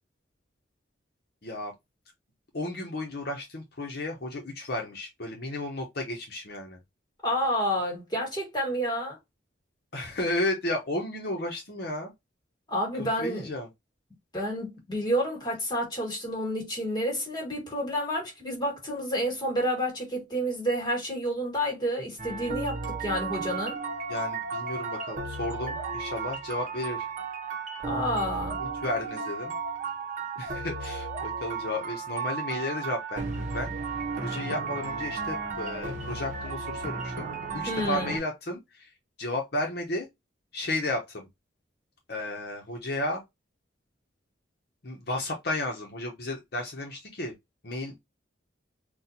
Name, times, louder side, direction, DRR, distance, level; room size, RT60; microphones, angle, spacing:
voice 1, 1.4-1.7 2.5-6.8 9.9-12.1 12.9-13.7 24.1-27.1 28.3-29.6 30.4-33.8 34.2-38.9 39.2-40.1 40.5-41.3 42.1-43.2 44.8-47.4 47.6-48.0, left 1 dB, 55° left, 0.8 m, -33 dB
voice 2, 7.2-9.2 12.7-13.5 14.3-23.8 27.8-28.6 37.7-38.2, equal, 25° left, 1.6 m, -29 dB
sound 1, 22.2-38.2, right 4 dB, 40° right, 0.9 m, -34 dB
4.1 x 2.3 x 2.7 m
head